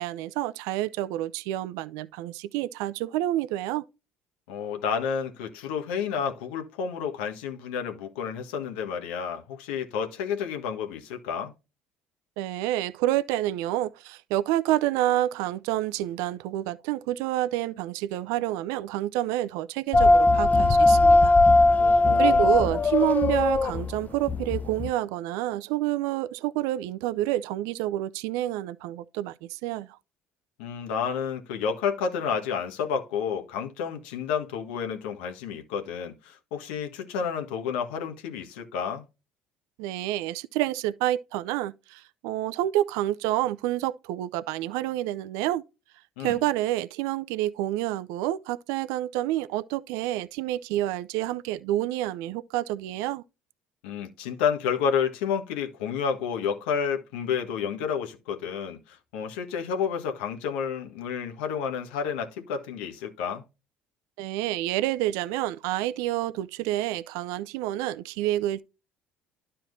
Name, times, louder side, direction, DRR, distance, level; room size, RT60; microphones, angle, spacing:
voice 1, 0.0-3.8 12.4-21.4 22.2-30.0 39.8-45.6 46.2-53.2 64.2-68.6, right 14 dB, 75° right, 0.5 m, -28 dB
voice 2, 4.5-11.5 21.8-22.6 30.6-39.1 46.2-46.4 53.8-63.4, left 7 dB, 80° left, 1.5 m, -30 dB
sound 1, 19.9-24.9, left 2 dB, 30° left, 0.5 m, -19 dB
12.0 x 4.3 x 2.7 m
hypercardioid pair, 65°, 6 cm